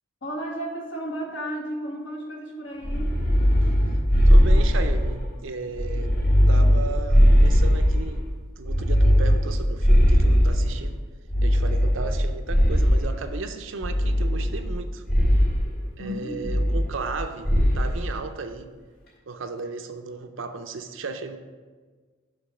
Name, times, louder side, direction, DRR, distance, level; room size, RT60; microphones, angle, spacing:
voice 1, 0.2-3.2 16.0-16.7, equal, 65° left, -1 dB, 1.4 m, -33 dB
sound 1, 2.8-5.3 5.7-8.2 8.7-10.8 11.3-13.2 13.8-14.8 15.1-15.6 16.4-17.2 17.5-17.9, equal, 45° left, 2.4 m, -19 dB
voice 2, 4.3-6.1 6.5-8.2 8.6-11.0 11.4-15.0 16.0-18.7 19.3-21.4, right 4 dB, 75° right, 7 dB, 0.6 m, -35 dB
5.5 x 5.2 x 5.5 m, 1.4 s
head